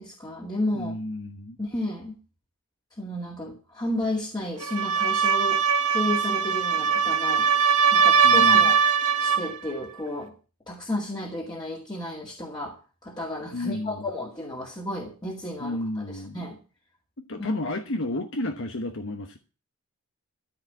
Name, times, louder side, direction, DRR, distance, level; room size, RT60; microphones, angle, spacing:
voice 1, 0.0-0.9 1.6-2.1 3.0-5.6 5.9-7.5 7.9-8.8 9.2-10.3 10.7-16.6 17.4-17.5, left 1 dB, 20° left, 2.2 m, -32 dB
voice 2, 0.7-1.6 8.2-8.8 13.5-14.1 15.6-16.5 17.2-19.4, left 1 dB, 60° left, 1.1 m, -31 dB
sound 1, 4.6-9.5, right 6 dB, 90° right, 1.6 m, -21 dB
13.5 x 5.1 x 9.2 m
head